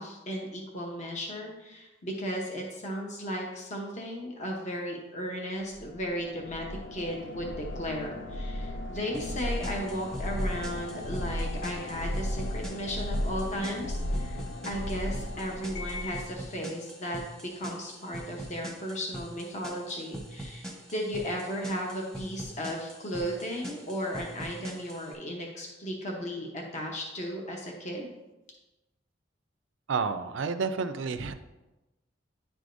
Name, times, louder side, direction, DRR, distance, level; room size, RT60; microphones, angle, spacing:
voice 1, 0.0-17.2 17.5-28.1, equal, 40° left, 0 dB, 0.9 m, -35 dB
sound 1, 5.7-16.3, left 1 dB, 70° left, 0.5 m, -35 dB
sound 2, 9.1-25.1, right 1 dB, 5° left, 1.0 m, -44 dB
voice 2, 29.9-31.3, right 5 dB, 75° right, 10 dB, 0.5 m, -30 dB
10.0 x 4.8 x 2.6 m, 1.0 s
head